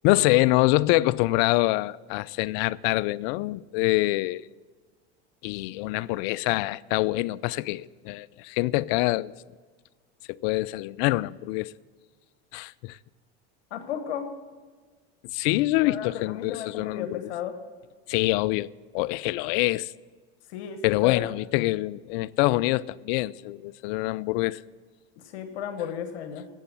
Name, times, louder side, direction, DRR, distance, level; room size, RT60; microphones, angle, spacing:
voice 1, 0.0-4.4 5.4-9.3 10.4-11.7 12.5-13.0 15.3-17.2 18.1-19.9 20.8-24.6, left 19 dB, 65° left, 0.5 m, -25 dB
voice 2, 13.7-14.3 15.8-17.5 20.5-21.3 25.3-26.5, left 9 dB, 85° left, 1.3 m, -34 dB
12.5 x 8.1 x 7.4 m
supercardioid pair, 105°, 33 cm